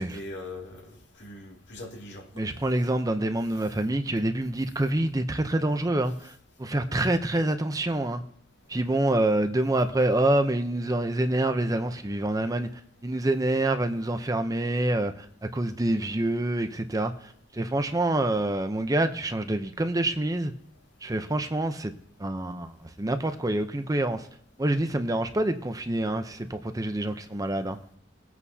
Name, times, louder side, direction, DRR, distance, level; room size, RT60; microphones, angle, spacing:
voice 1, 0.0-2.5, left 2 dB, 70° left, 2.5 m, -41 dB
voice 2, 2.3-8.2 8.7-12.7 13.0-20.5 21.0-21.9 22.2-24.3 24.6-27.8, right 1 dB, 20° right, 0.6 m, -27 dB
21.0 x 8.3 x 2.8 m
head